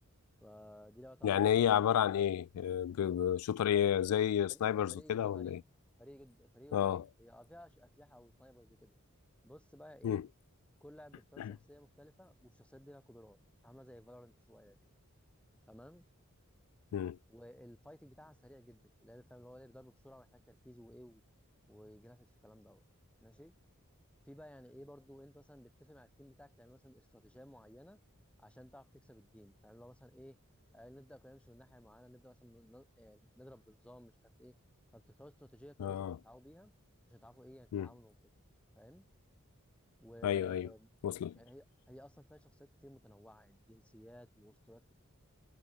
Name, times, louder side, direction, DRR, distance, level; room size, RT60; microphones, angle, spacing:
voice 1, 0.4-1.6 4.5-4.6 4.9-5.6 6.0-8.9 9.4-10.3 10.8-13.4 13.6-14.8 15.7-16.1 17.3-21.2 21.7-22.8 23.2-23.6 24.2-28.0 28.4-30.4 30.7-34.1 34.4-34.6 34.9-36.7 37.1-38.3 38.7-39.0 40.0-40.9 41.3-44.9, equal, 5° left, 2.1 m, -56 dB
voice 2, 1.2-5.6 6.7-7.0 10.0-10.2 16.9-17.2 35.8-36.2 37.7-37.9 40.2-40.7 41.0-41.4, left 9 dB, 85° left, 0.3 m, -31 dB
head